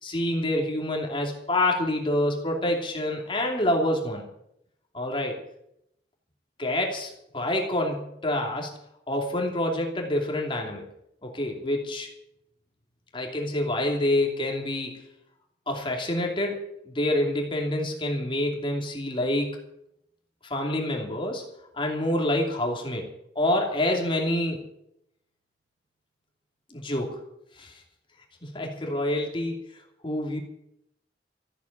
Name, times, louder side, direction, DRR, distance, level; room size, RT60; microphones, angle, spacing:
voice 1, 0.0-4.2 4.9-5.4 6.6-8.7 9.1-10.8 11.2-12.1 13.1-15.1 15.7-19.6 20.4-21.4 21.7-23.1 23.3-24.6 26.7-27.2 27.6-27.8 28.4-29.6 30.0-30.4, left 1 dB, 30° left, 1 dB, 2.7 m, -27 dB
14.5 x 8.3 x 9.8 m, 0.77 s
head